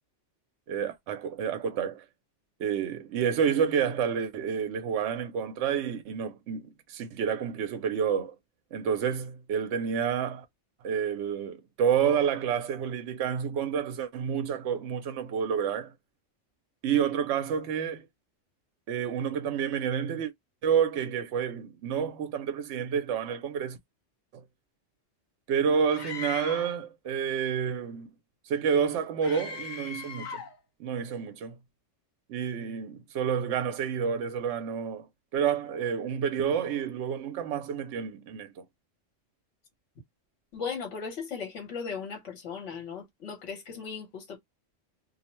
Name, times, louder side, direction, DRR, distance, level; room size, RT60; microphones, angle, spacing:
voice 1, 0.7-2.0 2.6-8.3 8.7-10.4 10.8-15.9 16.8-18.1 18.9-20.3 20.6-23.8 24.3-24.4 25.5-28.1 28.5-30.4 30.8-31.6 32.3-35.1 35.3-38.6, right 7 dB, 70° right, 0.8 m, -29 dB
Screaming, 25.9-26.8 29.2-30.6, left 6 dB, 45° left, 0.7 m, -39 dB
voice 2, 40.5-44.4, left 5 dB, 70° left, 1.3 m, -37 dB
2.6 x 2.1 x 2.9 m
omnidirectional pair, 1.3 m